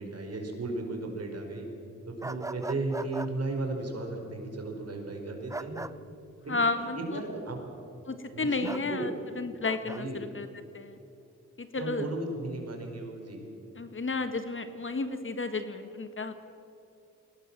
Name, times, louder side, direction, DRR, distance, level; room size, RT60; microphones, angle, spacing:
voice 1, 0.0-1.7 2.1-5.9 6.4-7.7 8.3-9.2 9.8-10.3 11.7-13.4, right 2 dB, 55° right, 2 dB, 5.0 m, -35 dB
sound 1, 2.2-3.3 5.5-5.9 8.6-8.9 9.6-10.0, right 2 dB, 10° right, 0.7 m, -38 dB
voice 2, 6.5-7.2 8.1-10.5 10.7-11.0 11.6-12.1 13.7-16.3, left 3 dB, 40° left, 9 dB, 1.6 m, -32 dB
21.0 x 18.0 x 7.4 m, 2.7 s
cardioid pair, 65°, 30 cm